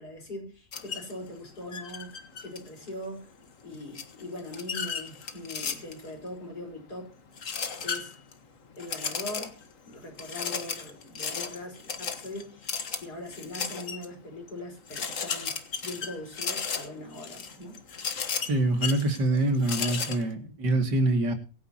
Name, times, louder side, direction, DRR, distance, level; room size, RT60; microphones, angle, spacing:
voice 1, 0.0-3.3 3.6-7.1 7.8-8.2 8.8-9.6 9.9-17.8, left 1 dB, 65° left, 3 dB, 5.2 m, -41 dB
sound 1, 0.7-1.1 1.7-2.9 3.9-6.1 7.4-8.3 8.8-9.7 10.2-14.1 14.5-14.6 14.9-20.2, left 6 dB, 50° left, 1.8 m, -34 dB
voice 2, 18.5-21.3, right 2 dB, 75° right, 6 dB, 2.9 m, -25 dB
23.5 x 9.5 x 2.9 m, 0.34 s
omnidirectional pair, 1.9 m